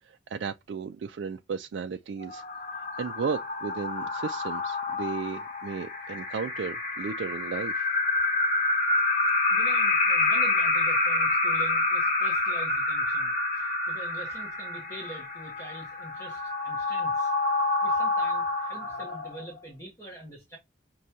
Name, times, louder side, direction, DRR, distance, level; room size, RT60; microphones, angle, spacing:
voice 1, 0.3-2.4 3.0-7.9, right 5 dB, 70° right, 0.3 m, -34 dB
sound 1, 2.2-19.6, left 2 dB, 35° left, 1.1 m, -27 dB
voice 2, 9.5-17.3 17.8-20.6, right 1 dB, 15° left, 1.0 m, -45 dB
6.2 x 2.2 x 2.7 m
head